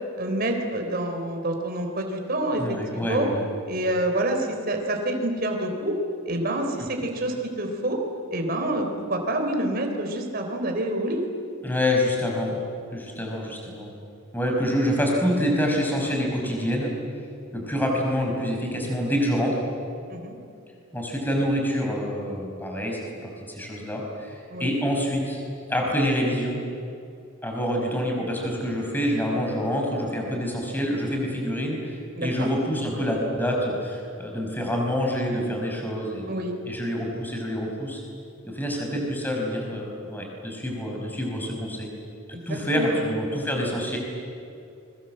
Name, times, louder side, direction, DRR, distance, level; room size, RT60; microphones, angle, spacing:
voice 1, 0.2-3.3 3.7-6.0 6.3-8.0 8.3-11.3 20.1-20.3 24.5-24.7 32.2-32.5 36.3-36.5 42.3-43.0, right 1 dB, 45° right, 4 dB, 3.8 m, -27 dB
voice 2, 2.6-3.4 11.6-12.6 12.9-13.9 14.3-16.9 17.5-19.6 20.9-25.4 25.7-26.6 27.4-36.3 36.7-38.0 38.4-41.9 42.5-44.0, equal, 10° left, 0 dB, 5.4 m, -26 dB
29.5 x 23.0 x 7.8 m, 2.6 s
head